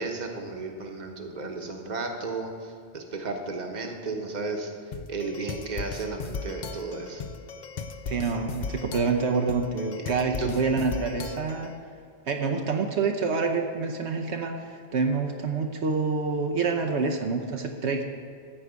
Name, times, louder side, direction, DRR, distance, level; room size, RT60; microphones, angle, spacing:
voice 1, 0.0-4.7 5.1-7.2 10.4-10.5, right 3 dB, 40° right, 3 dB, 1.2 m, -34 dB
sound 1, 4.9-11.8, left 4 dB, 50° left, 0.6 m, -37 dB
voice 2, 8.1-11.7 12.3-18.0, right 4 dB, 75° right, 3 dB, 1.1 m, -27 dB
14.5 x 4.9 x 8.1 m, 2.3 s
omnidirectional pair, 1.2 m